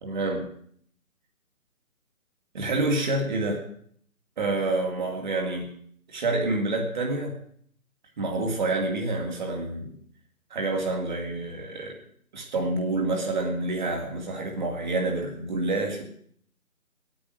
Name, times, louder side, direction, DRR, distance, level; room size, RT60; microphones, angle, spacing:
voice 1, 0.0-0.5 2.5-3.6 4.4-5.7 6.1-7.3 8.2-10.0 10.5-12.0 12.3-16.0, right 2 dB, 35° right, 1 dB, 2.3 m, -28 dB
16.5 x 8.8 x 6.4 m, 0.62 s
figure-of-eight pair, 160°, 42 cm